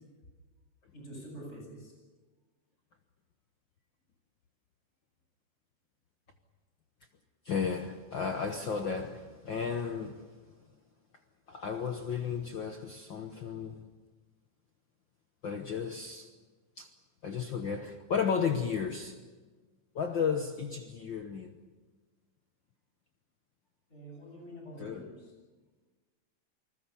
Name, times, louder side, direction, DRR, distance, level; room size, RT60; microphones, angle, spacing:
voice 1, 0.9-1.9 23.9-25.2, right 1 dB, 20° left, 8.1 m, -46 dB
voice 2, 7.4-10.3 11.5-13.8 15.4-16.3 16.8-16.9 17.2-19.1 19.9-21.6 24.8-25.1, left 6 dB, 65° left, 1.2 m, -33 dB
28.5 x 20.0 x 7.1 m
omnidirectional pair, 3.6 m